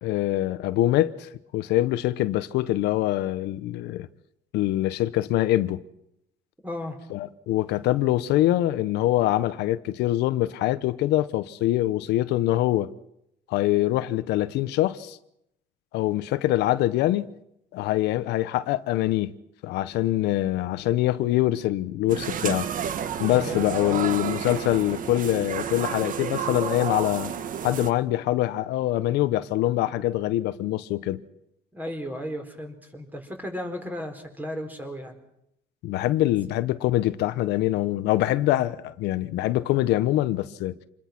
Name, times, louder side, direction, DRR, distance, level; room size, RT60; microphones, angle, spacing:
voice 1, 0.0-4.1 4.5-5.8 7.1-12.9 13.5-15.2 15.9-17.3 17.7-19.3 19.6-22.7 23.2-27.3 27.6-31.2 35.8-40.7, left 15 dB, 85° left, 1.1 m, -24 dB
voice 2, 6.6-7.0 23.4-24.1 31.7-35.2, equal, 10° right, 4.6 m, -35 dB
sound 1, 22.1-27.9, right 8 dB, 55° right, 1.6 m, -31 dB
27.5 x 21.0 x 6.1 m
cardioid pair, 110°, 17 cm